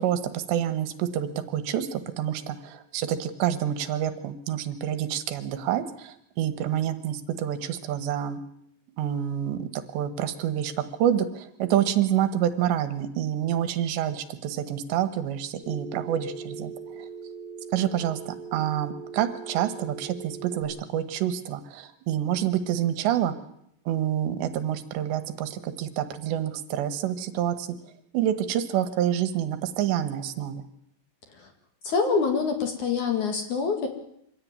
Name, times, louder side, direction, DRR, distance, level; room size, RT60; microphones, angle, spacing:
voice 1, 0.0-8.4 9.0-10.7 11.0-16.7 17.0-17.1 17.7-23.3 23.9-27.7 28.1-30.6, right 10 dB, 75° right, 11 dB, 3.4 m, -27 dB
Telephone, 15.6-20.6, right 5 dB, 85° left, 10.0 m, -40 dB
voice 2, 31.8-33.9, left 5 dB, 50° left, 5 dB, 2.9 m, -25 dB
25.0 x 16.5 x 9.6 m, 0.75 s
omnidirectional pair, 5.3 m